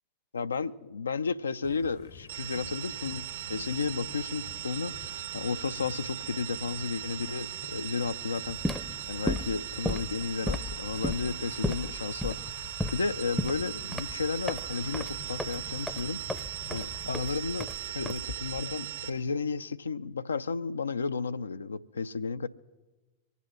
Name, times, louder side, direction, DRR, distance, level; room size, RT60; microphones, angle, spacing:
voice 1, 0.3-16.2 16.7-22.5, left 5 dB, 75° left, 0.4 m, -33 dB
sound 1, 1.6-17.6, left 8 dB, 45° left, 0.7 m, -50 dB
sound 2, 2.3-19.1, right 13 dB, 70° right, 1.2 m, -39 dB
sound 3, 8.5-18.7, left 1 dB, 5° left, 0.6 m, -35 dB
23.5 x 8.3 x 6.2 m
figure-of-eight pair, 90°, 0 cm